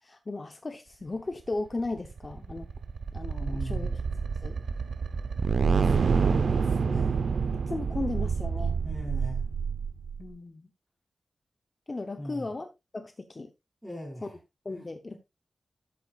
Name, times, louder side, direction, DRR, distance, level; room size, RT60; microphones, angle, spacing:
voice 1, 0.0-2.7 3.1-3.9 4.4-4.6 7.5-8.7 10.2-10.6 11.9-13.5 14.6-15.2, left 2 dB, 30° left, 0.8 m, -36 dB
sound 1, 1.9-10.3, right 5 dB, 70° right, 0.7 m, -28 dB
voice 2, 3.4-4.0 5.5-7.5 8.8-9.5 12.2-12.5 13.8-14.4 14.7-15.2, equal, 5° right, 4.7 m, -41 dB
12.5 x 8.3 x 2.4 m
wide cardioid pair, 165°, 0 cm